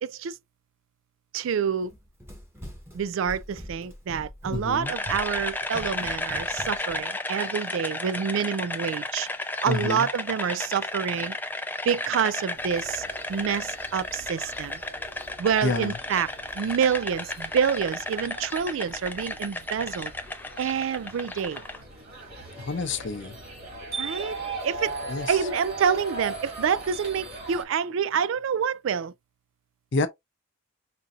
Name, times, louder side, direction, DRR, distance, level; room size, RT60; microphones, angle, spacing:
voice 1, 0.0-0.3 1.3-1.9 2.9-9.3 9.6-11.4 11.8-14.8 15.4-16.3 16.5-20.1 20.6-21.6 24.0-24.4 24.6-24.9 25.3-29.1, right 7 dB, 65° right, 0.3 m, -27 dB
Run, 1.8-7.0, equal, 10° right, 0.9 m, -42 dB
voice 2, 4.5-4.9 9.7-10.1 15.6-16.0 22.6-23.4 25.1-25.4 29.9-30.1, left 3 dB, 60° left, 0.6 m, -28 dB
sound 1, 4.8-21.8, left 2 dB, 10° left, 0.4 m, -33 dB
sound 2, 12.6-27.6, right 2 dB, 50° right, 1.9 m, -40 dB
5.1 x 2.7 x 2.4 m
head